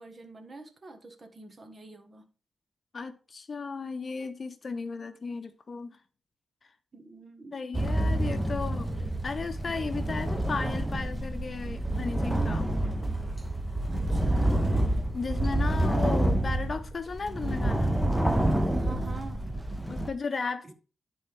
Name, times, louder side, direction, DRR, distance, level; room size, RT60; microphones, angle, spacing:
voice 1, 0.0-2.2 6.9-7.8 13.9-14.8 18.8-19.5, right 3 dB, 40° right, 1.4 m, -47 dB
voice 2, 2.9-6.0 7.5-12.7 15.1-18.0 19.9-20.7, left 4 dB, 45° left, 0.8 m, -35 dB
sound 1, 7.7-20.1, right 1 dB, 5° right, 0.8 m, -28 dB
10.5 x 4.2 x 3.5 m
cardioid pair, 90°, 0 cm